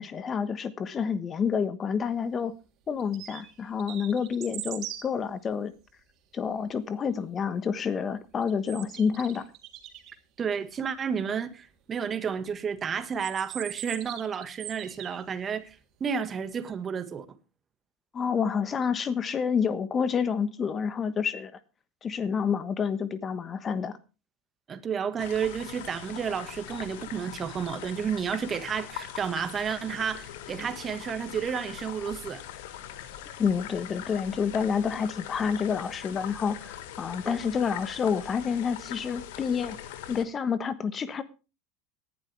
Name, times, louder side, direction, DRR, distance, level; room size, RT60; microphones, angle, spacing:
voice 1, 0.0-2.5 2.9-5.7 6.3-9.5 18.1-21.5 22.0-24.0 33.4-39.8 40.1-41.2, left 6 dB, 30° left, 1.3 m, -28 dB
sound 1, 3.0-3.5 3.8-5.1 8.4-10.1 13.0-15.2, right 12 dB, 50° right, 3.2 m, -40 dB
voice 2, 10.4-17.2 24.7-32.4 37.2-37.4, right 7 dB, 30° right, 1.7 m, -31 dB
sound 2, 25.2-40.2, left 11 dB, 65° left, 1.6 m, -42 dB
18.0 x 11.5 x 3.5 m
hypercardioid pair, 85°, 0 cm